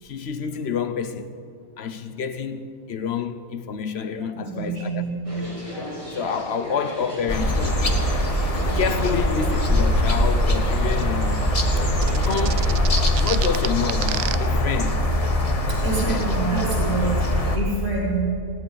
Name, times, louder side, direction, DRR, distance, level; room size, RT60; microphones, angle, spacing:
voice 1, 0.0-1.4 1.8-5.0 5.3-5.4 5.7-8.1 8.7-11.4 12.1-15.0 16.0-16.3, left 6 dB, 55° left, 0.9 m, -29 dB
voice 2, 4.4-5.3 15.7-18.2, right 3 dB, 55° right, 3.6 m, -27 dB
sound 1, 5.2-12.8, equal, 20° right, 4.1 m, -36 dB
sound 2, 7.3-17.6, left 1 dB, 25° left, 1.2 m, -22 dB
sound 3, 12.0-14.4, right 12 dB, 75° right, 1.0 m, -29 dB
20.0 x 17.0 x 4.0 m
omnidirectional pair, 1.5 m